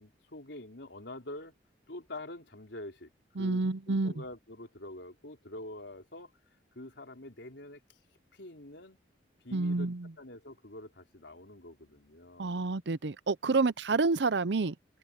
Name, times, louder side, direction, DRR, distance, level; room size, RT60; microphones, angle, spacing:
voice 1, 0.0-1.5 1.9-3.1 3.4-6.3 6.7-7.8 8.3-9.0 9.4-9.9 10.2-12.7, left 1 dB, 75° left, 4.2 m, -46 dB
voice 2, 3.4-4.1 9.5-10.1 12.4-14.8, right 3 dB, 70° right, 0.7 m, -29 dB
head